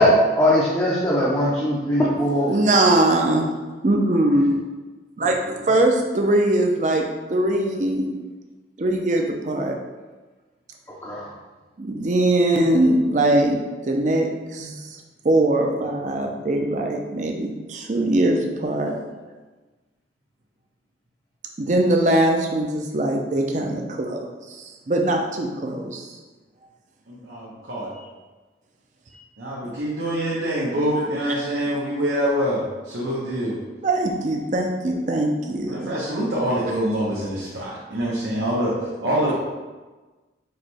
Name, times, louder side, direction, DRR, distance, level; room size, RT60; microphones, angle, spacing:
voice 1, 0.0-2.5 11.0-11.3, equal, 15° left, -7 dB, 0.5 m, -19 dB
voice 2, 2.5-3.5 3.8-4.5 5.2-8.1 8.8-9.8 11.8-13.6 13.8-19.0 21.6-26.2 33.8-35.9, right 1 dB, 40° right, 2 dB, 0.5 m, -21 dB
voice 3, 27.1-27.9 29.4-33.6 35.7-38.7 39.0-39.4, equal, 80° right, -7 dB, 0.9 m, -25 dB
4.8 x 2.2 x 4.3 m, 1.2 s
head